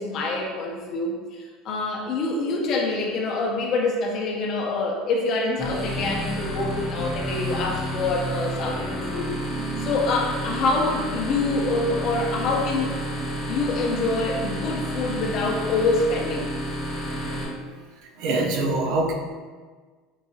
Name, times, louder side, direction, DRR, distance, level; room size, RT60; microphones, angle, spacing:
voice 1, 0.0-9.3 9.8-12.9 13.5-16.5, left 3 dB, 40° left, 0 dB, 0.6 m, -26 dB
sound 1, 5.6-17.4, equal, 5° right, 1.2 m, -30 dB
voice 2, 9.5-10.0 17.6-17.7 18.2-19.1, right 2 dB, 60° right, 1 dB, 0.5 m, -25 dB
4.6 x 2.7 x 2.4 m, 1.5 s
cardioid pair, 160°, 0 cm